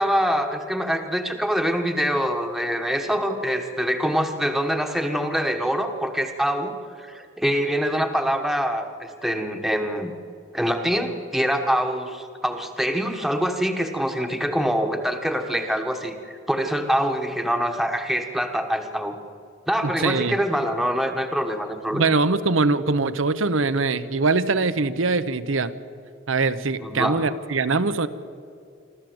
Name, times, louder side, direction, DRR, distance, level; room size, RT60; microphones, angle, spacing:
voice 1, 0.0-10.1 10.5-19.2 19.7-22.1 26.8-27.2, equal, ahead, 4 dB, 1.2 m, -25 dB
voice 2, 19.8-20.4 21.9-25.7 26.3-28.1, right 3 dB, 80° right, 12 dB, 0.9 m, -22 dB
26.5 x 13.5 x 7.9 m, 2.4 s
head